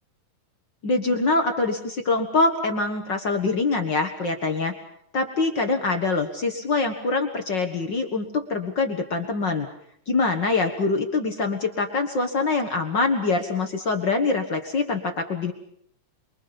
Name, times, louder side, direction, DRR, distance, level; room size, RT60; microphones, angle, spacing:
voice 1, 0.8-4.7 5.1-9.7 10.1-15.5, left 3 dB, 45° left, 4 dB, 1.7 m, -24 dB
28.5 x 23.0 x 5.3 m, 0.68 s
omnidirectional pair, 3.9 m